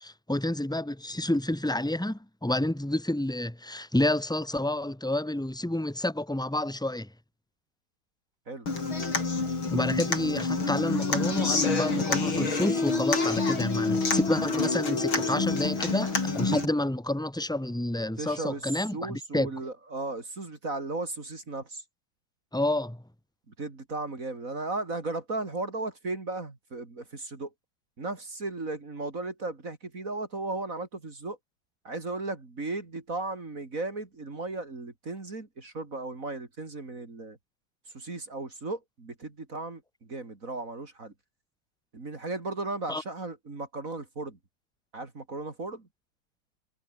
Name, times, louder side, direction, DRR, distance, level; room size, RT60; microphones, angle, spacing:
voice 1, 0.0-7.1 9.7-19.5 22.5-23.0 42.9-43.0, left 1 dB, ahead, 1.0 m, -29 dB
Human voice / Acoustic guitar, 8.7-16.6, left 3 dB, 70° left, 5.7 m, -27 dB
voice 2, 18.2-18.7 18.9-21.8 23.6-27.5 28.0-31.4 31.9-37.4 37.9-41.1 41.9-44.4 44.9-45.9, right 2 dB, 40° right, 3.4 m, -36 dB
omnidirectional pair, 2.3 m